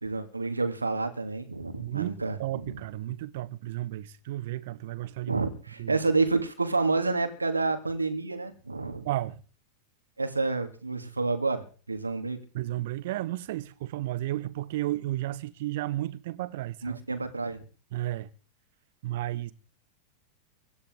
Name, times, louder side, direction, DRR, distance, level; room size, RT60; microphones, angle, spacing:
voice 1, 0.0-2.8 5.3-9.1 10.2-12.4 16.8-17.6, right 3 dB, 80° right, 2.5 m, -29 dB
voice 2, 1.8-2.1 2.4-5.4 5.8-6.0 9.0-9.4 12.5-17.0 17.9-18.3 19.0-19.5, right 15 dB, 55° right, 1.2 m, -33 dB
24.5 x 11.0 x 3.9 m
figure-of-eight pair, 90°, 0 cm